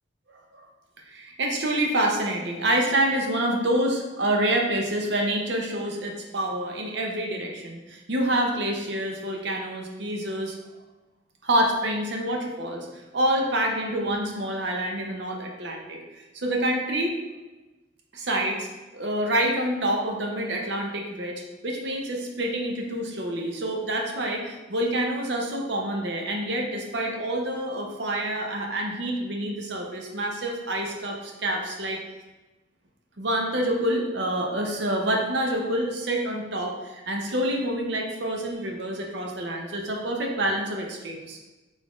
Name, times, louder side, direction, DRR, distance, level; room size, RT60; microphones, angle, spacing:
voice 1, 1.1-10.5 11.4-12.9 13.1-16.0 16.3-17.2 18.1-18.7 18.9-32.0 33.2-41.4, right 1 dB, 65° right, 1 dB, 0.7 m, -27 dB
4.1 x 3.6 x 3.0 m, 1.1 s
head